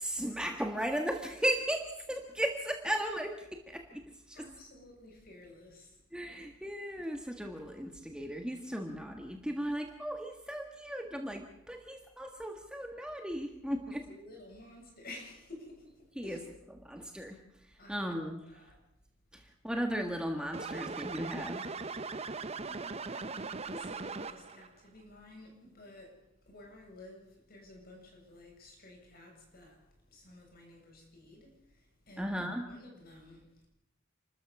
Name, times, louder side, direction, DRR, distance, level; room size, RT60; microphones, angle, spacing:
voice 1, 0.0-1.8 2.1-4.0 4.3-4.4 6.1-14.0 16.2-16.4 16.7-17.4 17.9-18.4 19.3-21.7 32.2-32.7, right 1 dB, 5° right, 1.6 m, -36 dB
voice 2, 4.3-6.0 13.9-16.5 17.8-18.8 22.2-33.7, left 2 dB, 50° left, 7.6 m, -53 dB
sound 1, 20.5-24.7, right 4 dB, 30° right, 0.8 m, -39 dB
29.5 x 13.5 x 7.1 m
head